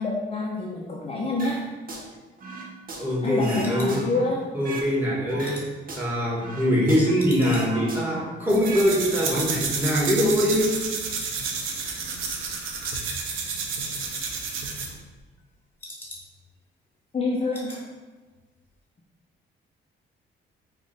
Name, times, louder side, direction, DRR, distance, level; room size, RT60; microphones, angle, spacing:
voice 1, 0.0-1.6 3.2-4.4 17.1-17.8, left 2 dB, 30° left, -3 dB, 0.6 m, -27 dB
sound 1, 1.4-2.1 2.4-4.9 5.3-7.1 7.4-8.9 9.2-9.4, right 2 dB, 45° right, 0.9 m, -37 dB
sound 2, 2.1-4.7 5.0-6.8 7.2-9.0 9.2-9.6 9.9-10.0 10.4-10.8 11.1-11.9 12.2-12.4 12.8-13.1 13.4-13.5 13.7-14.7 15.0-16.6 16.9-17.0 17.2-17.8 18.1-18.4 18.7-18.8, left 1 dB, 10° left, 1.2 m, -45 dB
voice 2, 3.0-4.0 4.5-5.7 5.9-10.9, equal, 10° right, -5 dB, 1.5 m, -23 dB
sound 3, 8.5-15.0, right 5 dB, 85° right, 0.7 m, -30 dB
4.8 x 2.5 x 4.1 m, 1.3 s
cardioid pair, 90°, 20 cm